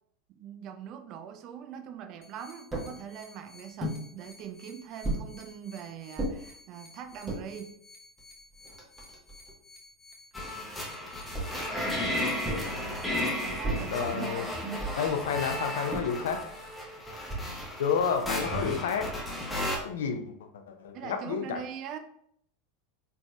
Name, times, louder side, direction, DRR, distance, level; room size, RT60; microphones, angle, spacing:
voice 1, 0.3-7.7 13.4-14.5 20.9-22.0, right 8 dB, 45° right, 7 dB, 0.4 m, -42 dB
sound 1, 2.2-13.1, left 2 dB, 40° left, 0.8 m, -54 dB
sound 2, 2.7-2.9 3.8-4.0 5.0-5.3 6.2-6.3 7.1-7.4 8.2-8.3 8.5-9.5 11.3-11.7 12.4-12.8 13.6-14.0 14.8-15.1 15.9-16.2 17.3-17.5 18.5-18.9, right 2 dB, 15° right, 1.1 m, -34 dB
sound 3, 10.3-19.8, left 1 dB, 10° left, 0.9 m, -34 dB
voice 2, 13.9-14.5 14.9-16.4 17.8-19.1 19.8-20.2 20.7-21.6, left 6 dB, 70° left, 6 dB, 0.5 m, -30 dB
4.0 x 3.3 x 2.2 m, 0.70 s
figure-of-eight pair, 85°, 0 cm